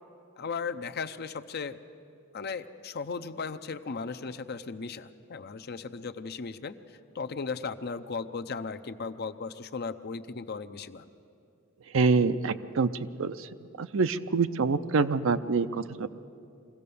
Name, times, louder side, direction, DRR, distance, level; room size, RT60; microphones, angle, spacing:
voice 1, 0.4-1.8 2.3-6.8 7.1-11.1, left 5 dB, 50° left, 10 dB, 0.6 m, -36 dB
voice 2, 11.9-13.5 13.8-16.1, right 4 dB, 65° right, 12 dB, 0.6 m, -26 dB
23.0 x 16.5 x 6.9 m, 2.5 s
head